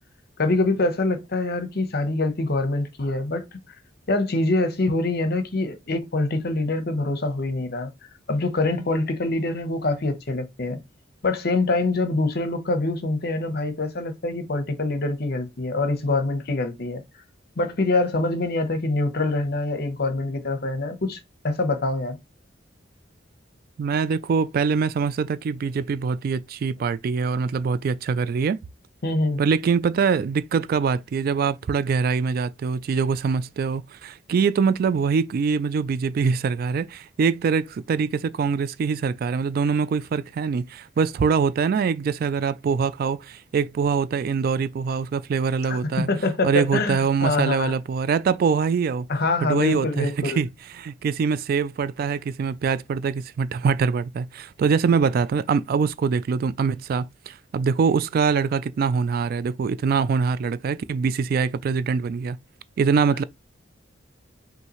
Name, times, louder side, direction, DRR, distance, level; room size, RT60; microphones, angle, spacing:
voice 1, 0.4-3.6 4.1-7.9 8.3-10.8 11.2-17.0 17.6-22.2 29.0-29.4 45.7-47.7 49.1-50.4, left 2 dB, 55° left, 0.9 m, -25 dB
voice 2, 23.8-28.6 29.4-46.1 46.4-49.1 49.4-50.5 50.8-62.4 62.8-63.2, right 5 dB, 50° right, 0.3 m, -23 dB
5.5 x 2.7 x 3.0 m
head